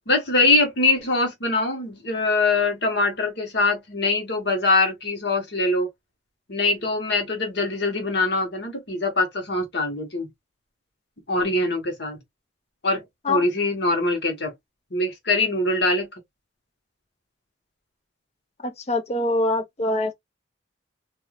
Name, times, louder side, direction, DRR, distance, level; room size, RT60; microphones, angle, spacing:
voice 1, 0.1-5.9 6.5-10.3 11.3-12.2 12.8-14.5 14.9-16.2, left 2 dB, 60° left, 1.3 m, -23 dB
voice 2, 18.6-20.1, left 2 dB, 35° left, 0.6 m, -24 dB
3.2 x 2.6 x 2.4 m
head